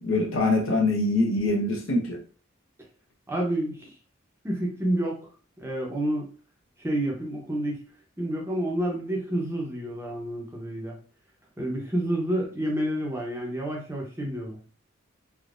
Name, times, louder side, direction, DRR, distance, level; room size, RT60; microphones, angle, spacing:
voice 1, 0.0-2.2, left 2 dB, 75° left, 0 dB, 0.9 m, -24 dB
voice 2, 3.3-3.9 4.4-5.2 5.6-6.3 6.8-7.8 8.2-11.0 11.6-14.6, right 1 dB, 10° right, -2 dB, 0.7 m, -29 dB
3.6 x 2.6 x 2.5 m, 0.40 s
head